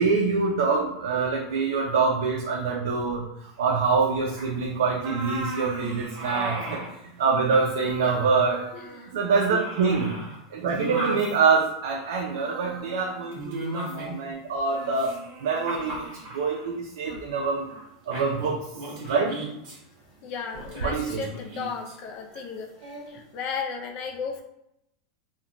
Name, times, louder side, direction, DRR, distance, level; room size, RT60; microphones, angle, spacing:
voice 1, 0.0-6.8 7.2-8.6 9.1-10.2 10.5-17.7 18.1-18.7 19.0-19.4 20.8-21.2, right 4 dB, 85° right, 0 dB, 0.4 m, -25 dB
sound 1, 4.4-4.6 4.9-6.9 7.3-9.2 9.4-11.4 12.3-14.3 14.7-16.6 17.0-17.2 17.7-17.8 18.1-19.8 20.5-21.9 22.8-23.1, right 2 dB, 50° right, 1.2 m, -37 dB
voice 2, 8.7-9.1 9.8-10.2 20.2-24.4, left 5 dB, 45° left, 3 dB, 0.3 m, -35 dB
2.5 x 2.1 x 2.9 m, 0.80 s
supercardioid pair, 150°, 2 cm